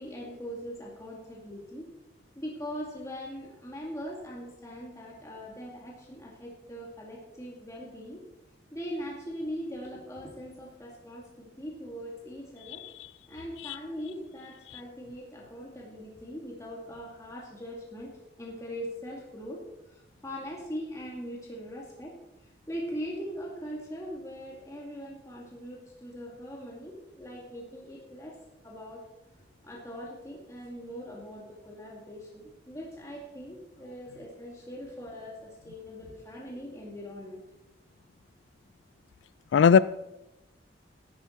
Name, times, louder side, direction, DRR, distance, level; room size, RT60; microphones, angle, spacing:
voice 1, 0.0-1.9 2.4-8.2 8.7-12.8 13.3-18.1 18.4-28.4 28.6-29.0 29.6-37.4, equal, 15° left, 2.1 m, -41 dB
voice 2, 12.8-13.1 13.6-13.8 14.7-14.8 39.5-39.8, left 6 dB, 80° left, 0.3 m, -21 dB
13.5 x 11.5 x 4.4 m
head